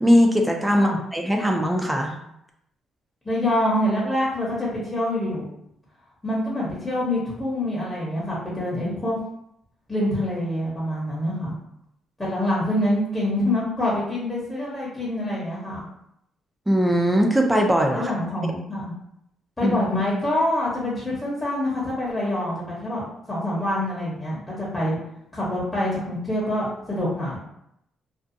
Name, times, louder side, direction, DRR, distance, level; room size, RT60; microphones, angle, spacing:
voice 1, 0.0-2.2 16.7-18.1 18.4-18.5 19.6-19.8, equal, 10° right, 2 dB, 0.4 m, -20 dB
voice 2, 3.2-5.5 6.2-9.2 9.9-11.5 12.2-15.8 17.9-18.9 19.6-25.0 25.3-27.4, left 1 dB, 15° left, -7 dB, 0.9 m, -26 dB
2.5 x 2.2 x 2.6 m, 0.78 s
cardioid pair, 90°, 0 cm